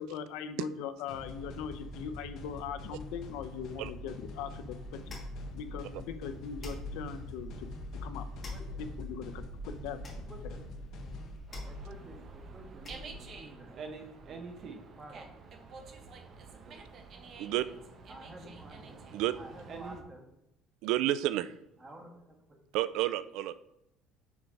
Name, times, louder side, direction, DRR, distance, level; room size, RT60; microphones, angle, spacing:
voice 1, 0.0-5.2 5.5-7.7 8.0-8.2 9.0-10.0, left 8 dB, 85° left, 10 dB, 0.7 m, -40 dB
sound 1, 1.1-11.4, left 1 dB, 55° left, 1.4 m, -45 dB
sound 2, 4.8-13.4, left 1 dB, 20° left, 2.6 m, -45 dB
voice 2, 8.5-8.9 9.6-9.7 10.1-10.7 11.6-15.5 16.0-16.2 16.5-16.8 18.1-19.0 19.3-20.2 21.8-22.6, right 1 dB, 15° right, 2 dB, 1.5 m, -52 dB
Dog, 11.5-20.0, right 4 dB, 40° right, 0.9 m, -48 dB
voice 3, 20.8-21.5 22.7-23.5, right 14 dB, 70° right, 15 dB, 0.3 m, -30 dB
7.1 x 4.8 x 5.3 m, 0.86 s
cardioid pair, 155°, 0 cm